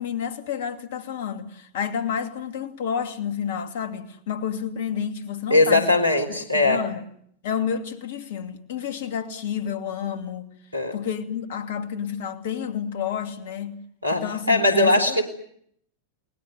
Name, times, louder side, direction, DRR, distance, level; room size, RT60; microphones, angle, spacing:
voice 1, 0.0-5.9 6.5-7.0 7.4-10.5 10.9-13.8 14.1-15.2, left 8 dB, 55° left, 2.7 m, -30 dB
voice 2, 5.5-6.8 10.7-11.0 14.0-15.2, left 2 dB, 85° right, 3.9 m, -20 dB
29.0 x 20.5 x 9.6 m
figure-of-eight pair, 90°, 0 cm